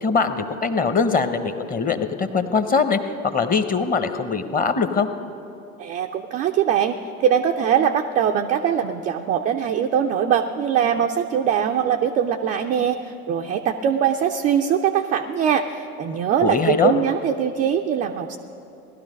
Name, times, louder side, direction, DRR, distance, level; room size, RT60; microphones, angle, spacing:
voice 1, 0.0-5.1 16.4-16.9, left 5 dB, 20° left, 9 dB, 0.9 m, -22 dB
voice 2, 5.8-18.4, right 8 dB, 20° right, 4 dB, 0.3 m, -22 dB
18.0 x 12.0 x 5.2 m, 2.8 s
hypercardioid pair, 90°, 43 cm